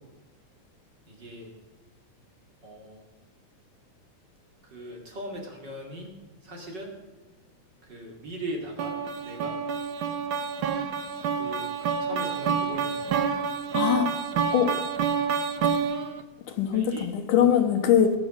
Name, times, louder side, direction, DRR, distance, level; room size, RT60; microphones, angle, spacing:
voice 1, 1.1-1.5 2.6-3.0 4.6-6.1 6.4-6.9 7.8-9.0 9.2-9.6 11.3-11.6 12.0-13.2 16.7-17.1, right 1 dB, 35° right, 1 dB, 2.6 m, -39 dB
sound 1, 8.8-16.2, right 6 dB, 75° right, 1.1 m, -28 dB
voice 2, 13.7-14.1 14.5-14.7 16.5-18.1, left 9 dB, 85° left, 6 dB, 2.8 m, -22 dB
20.0 x 7.5 x 6.3 m, 1.2 s
omnidirectional pair, 3.5 m